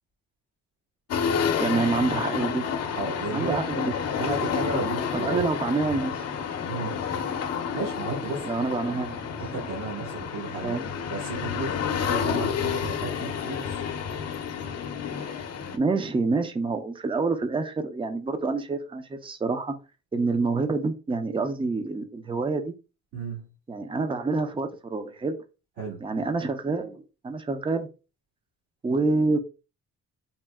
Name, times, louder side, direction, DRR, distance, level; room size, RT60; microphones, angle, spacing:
sound 1, 1.1-15.8, left 7 dB, 55° left, 0.7 m, -30 dB
voice 1, 1.6-2.6 3.3-3.9 5.1-6.2 8.4-9.3 10.6-10.9 15.2-15.3 15.7-19.8 20.1-22.7 23.7-25.4 26.0-27.9 28.8-29.4, right 3 dB, 15° right, 0.6 m, -27 dB
voice 2, 3.0-3.6 4.2-5.5 6.7-7.0 7.7-8.5 9.4-10.8 11.1-13.8 23.1-23.5 25.8-26.0, right 3 dB, 75° right, 1.8 m, -33 dB
4.2 x 2.1 x 3.5 m
cardioid pair, 90°, 30 cm